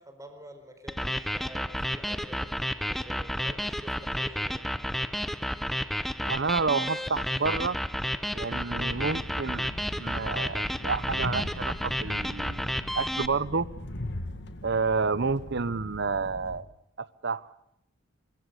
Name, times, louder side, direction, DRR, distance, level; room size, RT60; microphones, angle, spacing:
voice 1, 0.0-2.5 2.9-4.7, equal, 15° right, 8 dB, 4.4 m, -48 dB
sound 1, 0.9-13.3, equal, ahead, 0.8 m, -31 dB
voice 2, 6.2-7.8 8.3-9.7 10.0-12.6 13.0-13.7 14.6-16.7 17.0-17.4, right 4 dB, 60° right, 18 dB, 0.9 m, -29 dB
Train, 8.8-16.6, left 1 dB, 65° left, 2.1 m, -40 dB
25.0 x 22.5 x 6.7 m, 0.77 s
head